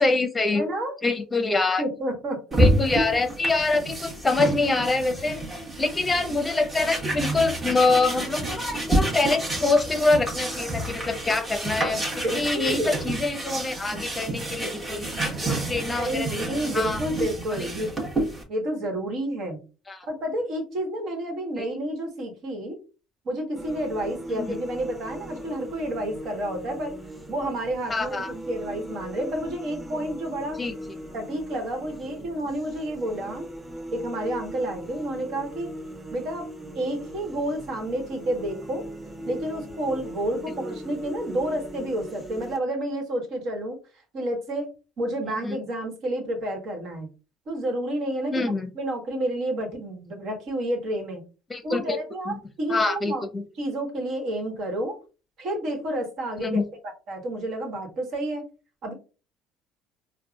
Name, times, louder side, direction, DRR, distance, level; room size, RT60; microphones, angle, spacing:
voice 1, 0.0-0.6 1.0-1.8 2.6-5.4 5.8-16.4 16.7-17.0 17.5-17.7 19.9-20.1 24.3-24.6 27.9-28.3 30.6-30.7 45.4-45.6 48.3-48.7 51.5-52.0 52.3-52.4 52.7-53.4 56.4-56.6, left 3 dB, 20° left, 7 dB, 0.8 m, -25 dB
voice 2, 0.5-0.9 1.8-2.6 12.2-13.0 16.0-17.9 18.5-19.6 20.1-22.8 23.2-27.0 27.3-30.6 31.1-33.5 33.9-35.7 36.1-36.5 36.7-38.8 39.3-43.8 44.1-44.7 45.0-47.1 47.5-51.2 51.6-53.2 53.6-55.0 55.4-56.6 57.1-58.4 58.8-58.9, right 1 dB, 55° right, 3 dB, 1.3 m, -30 dB
sound 1, 2.5-18.4, right 1 dB, 25° right, 1.5 m, -29 dB
sound 2, 23.6-42.6, right 1 dB, 10° right, 1.1 m, -39 dB
4.6 x 2.2 x 2.4 m, 0.33 s
hypercardioid pair, 60°, 0 cm